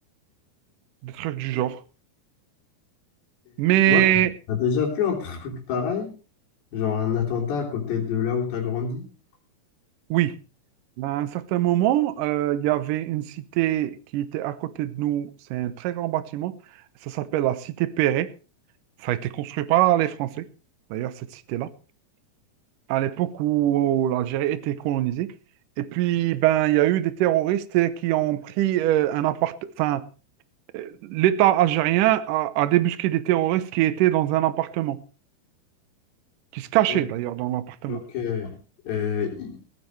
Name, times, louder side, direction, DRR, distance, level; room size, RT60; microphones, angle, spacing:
voice 1, 1.0-1.8 3.6-4.3 10.1-10.4 11.0-16.5 17.1-18.3 19.0-20.5 20.9-21.7 22.9-25.3 25.8-30.0 30.7-35.0 36.5-38.0, right 14 dB, 75° right, 2.0 m, -23 dB
voice 2, 4.5-6.1 6.7-9.1 36.9-37.0 37.9-38.6 38.9-39.6, left 7 dB, 85° left, 5.7 m, -26 dB
18.0 x 15.0 x 3.2 m
omnidirectional pair, 4.8 m